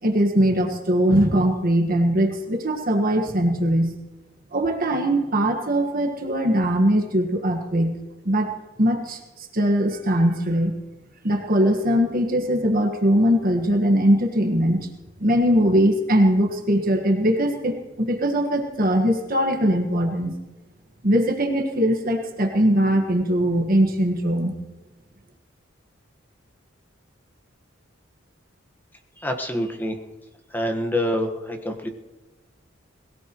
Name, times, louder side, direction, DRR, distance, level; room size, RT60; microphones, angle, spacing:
voice 1, 0.0-3.9 4.5-8.0 8.2-8.5 8.8-10.8 11.2-14.9 15.2-20.4 21.0-24.5, equal, 45° right, 3 dB, 1.5 m, -21 dB
voice 2, 29.2-29.9 30.5-31.9, left 1 dB, 10° left, 4 dB, 1.3 m, -26 dB
22.0 x 17.0 x 3.1 m, 1.1 s
head